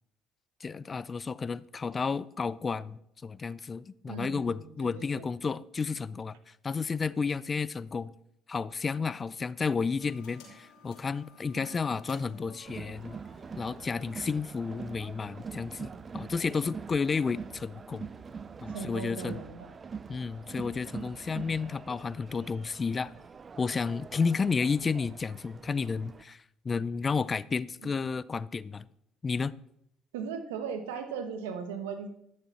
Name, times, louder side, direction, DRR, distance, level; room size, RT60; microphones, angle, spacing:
voice 1, 0.6-8.1 8.5-13.2 13.6-18.1 18.6-19.4 20.1-23.1 23.6-28.9 29.2-29.5, left 5 dB, 35° left, 0.4 m, -32 dB
voice 2, 4.1-5.3 11.5-11.7 18.7-19.7 30.1-32.1, right 6 dB, 90° right, 1.2 m, -38 dB
sound 1, 10.0-19.2, left 3 dB, 75° left, 3.7 m, -58 dB
Crowd, 12.6-26.2, right 5 dB, 35° right, 0.5 m, -44 dB
12.0 x 6.7 x 4.2 m
hypercardioid pair, 65°, 0 cm